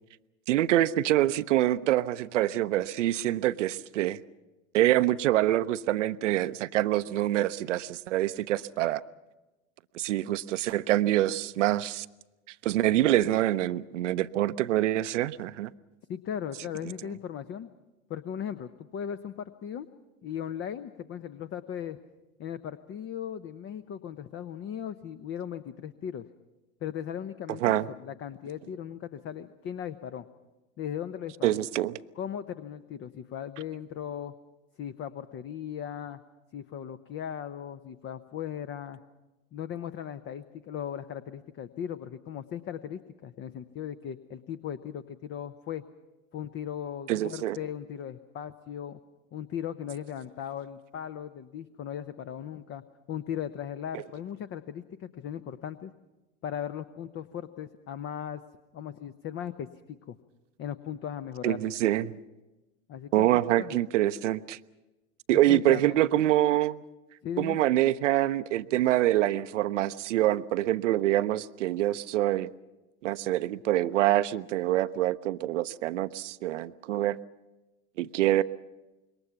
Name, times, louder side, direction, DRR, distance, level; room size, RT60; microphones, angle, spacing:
voice 1, 0.5-4.2 4.7-9.0 9.9-12.1 12.6-15.7 27.6-27.9 31.4-32.0 47.1-47.6 53.9-54.0 61.4-62.2 63.1-64.6 65.3-66.8 67.4-72.5 73.0-77.2 78.0-78.4, right 14 dB, 70° right, 14 dB, 0.7 m, -25 dB
voice 2, 16.1-17.7 18.1-19.9 20.2-22.0 22.4-26.3 26.8-30.2 30.8-31.6 32.2-34.4 34.8-36.2 36.5-39.0 39.5-45.8 46.3-49.0 49.3-52.8 53.1-55.9 56.4-58.4 58.7-60.2 60.6-61.6 62.9-63.3 63.6-63.8 65.3-66.0 67.2-67.6, left 9 dB, 35° left, 12 dB, 0.9 m, -37 dB
26.5 x 22.5 x 5.8 m, 1.1 s
hypercardioid pair, 85°, 38 cm